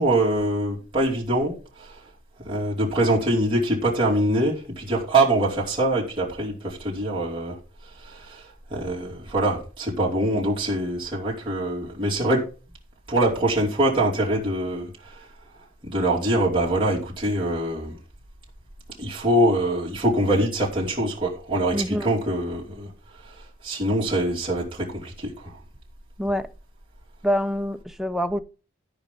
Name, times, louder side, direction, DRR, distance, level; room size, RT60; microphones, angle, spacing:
voice 1, 0.0-2.0 2.4-7.5 7.8-12.4 13.1-15.3 15.8-18.0 19.0-22.9 23.2-23.4 23.6-25.6, right 1 dB, 25° right, 2.8 m, -24 dB
voice 2, 21.7-22.1 26.2-26.5 27.2-28.4, equal, ahead, 0.6 m, -25 dB
13.0 x 5.4 x 5.2 m
head